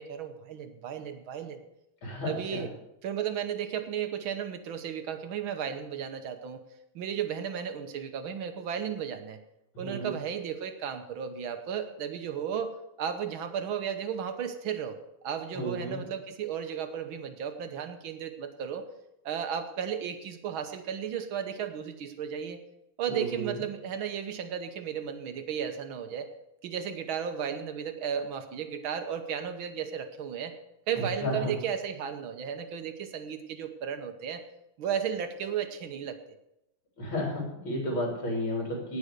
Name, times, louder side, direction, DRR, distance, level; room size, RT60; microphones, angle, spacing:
voice 1, 0.0-1.6 2.3-2.7 3.0-6.6 7.0-9.4 9.8-12.7 13.0-15.0 15.2-18.9 19.3-22.6 23.0-26.3 26.6-30.5 30.9-34.4 34.8-36.2, right 8 dB, 80° right, 7 dB, 1.8 m, -34 dB
voice 2, 2.0-2.6 9.7-10.1 15.5-16.0 23.1-23.6 31.0-31.5 37.0-39.0, equal, 75° left, -1 dB, 4.1 m, -32 dB
18.0 x 6.4 x 6.7 m, 0.85 s
omnidirectional pair, 2.2 m